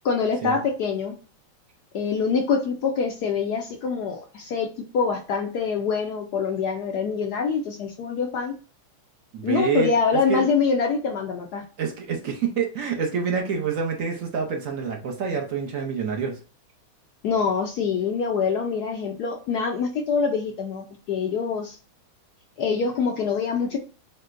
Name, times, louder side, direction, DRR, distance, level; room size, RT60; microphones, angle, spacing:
voice 1, 0.0-1.2 1.9-8.5 9.4-11.6 17.2-21.8 22.6-23.8, left 5 dB, 75° left, 2 dB, 0.9 m, -25 dB
voice 2, 9.3-10.5 11.8-16.4, right 6 dB, 60° right, 2 dB, 0.8 m, -27 dB
6.4 x 2.1 x 2.5 m, 0.36 s
omnidirectional pair, 2.3 m